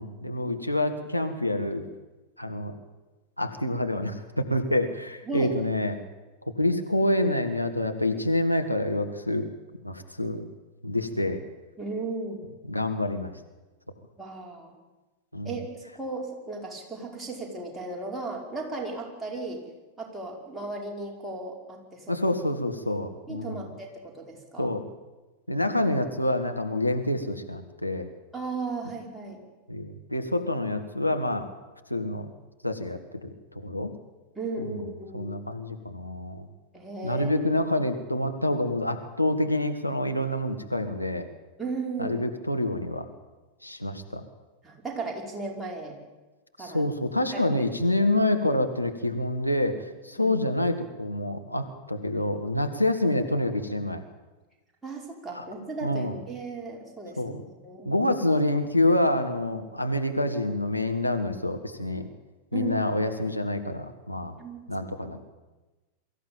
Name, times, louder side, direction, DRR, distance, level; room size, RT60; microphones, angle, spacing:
voice 1, 0.0-1.8 2.4-2.7 3.4-6.0 6.6-9.5 9.8-10.4 10.8-11.4 12.7-13.3 15.3-15.6 22.1-23.6 24.6-24.9 25.5-28.1 29.7-31.5 31.9-32.3 32.6-33.9 34.6-34.9 35.1-36.5 37.0-41.3 42.0-43.1 43.6-44.2 46.6-54.0 55.3-55.5 55.8-56.2 57.2-57.3 57.9-62.1 62.5-64.4 64.7-65.2, left 1 dB, 90° left, 5 dB, 1.7 m, -27 dB
voice 2, 11.8-12.4 14.2-14.7 15.4-15.7 15.9-19.6 20.0-22.3 23.3-24.8 28.3-29.5 34.4-35.4 36.7-37.3 41.6-42.2 44.6-46.0 46.6-46.9 47.3-47.4 47.9-48.1 50.2-50.4 54.8-57.9 62.5-62.8 64.4-64.7, right 3 dB, 10° right, -2 dB, 5.2 m, -36 dB
23.5 x 14.5 x 8.9 m, 1.2 s
figure-of-eight pair, 90°, 0 cm